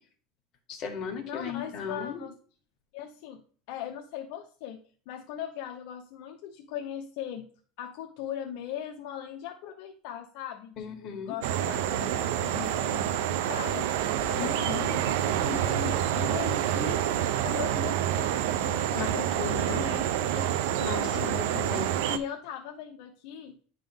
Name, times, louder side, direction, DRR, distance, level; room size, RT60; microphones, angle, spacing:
voice 1, 0.7-2.2 10.8-11.4 14.4-14.9 19.0-19.1 19.4-19.9 20.4-22.0, left 6 dB, 40° left, 3 dB, 1.7 m, -36 dB
voice 2, 1.2-2.3 2.9-3.4 3.7-4.8 5.1-7.5 7.8-13.9 14.2-21.3 22.1-23.5, left 9 dB, 70° left, 3 dB, 0.7 m, -39 dB
sound 1, 11.4-22.2, right 11 dB, 80° right, 0.5 m, -28 dB
10.0 x 3.7 x 3.5 m, 0.43 s
supercardioid pair, 140°, 0 cm